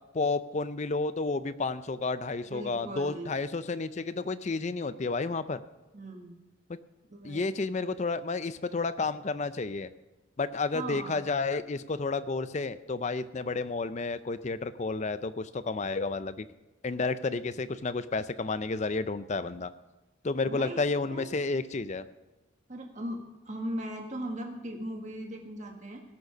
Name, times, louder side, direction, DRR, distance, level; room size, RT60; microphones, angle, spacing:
voice 1, 0.1-5.6 6.7-6.8 7.2-9.9 10.4-16.5 16.8-19.7 20.2-22.1, left 3 dB, 35° left, 13 dB, 0.5 m, -31 dB
voice 2, 2.5-3.3 5.9-6.4 7.1-7.6 10.7-11.2 20.5-21.3 22.7-26.0, right 1 dB, 35° right, 2 dB, 1.6 m, -38 dB
17.5 x 6.6 x 6.0 m, 1.1 s
head